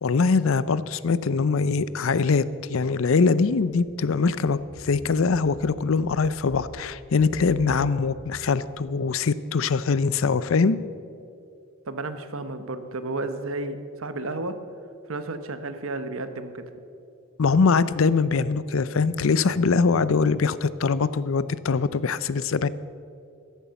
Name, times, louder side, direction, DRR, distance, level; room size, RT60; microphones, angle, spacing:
voice 1, 0.0-10.8 17.4-22.7, left 4 dB, 65° left, 16 dB, 0.5 m, -22 dB
sound 1, 3.5-8.8, equal, 5° right, 2.8 m, -46 dB
voice 2, 11.9-14.6 15.1-16.6, right 2 dB, 65° right, 10 dB, 1.0 m, -32 dB
14.0 x 11.0 x 7.0 m, 2.6 s
head